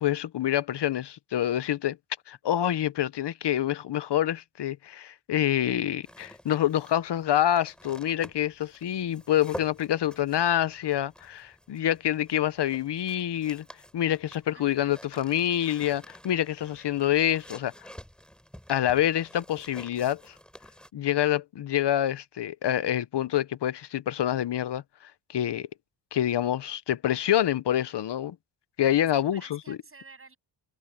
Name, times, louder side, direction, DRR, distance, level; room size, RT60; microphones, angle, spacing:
voice 1, 0.0-2.0 2.3-13.6 13.9-17.7 18.7-20.3 20.9-25.7 26.1-28.4 28.8-29.8, left 11 dB, 60° left, 0.8 m, -27 dB
sound 1, 6.0-20.9, equal, ahead, 3.6 m, -49 dB
voice 2, 14.5-15.0 29.1-30.4, right 3 dB, 30° right, 7.9 m, -51 dB
wide cardioid pair, 130°, 46 cm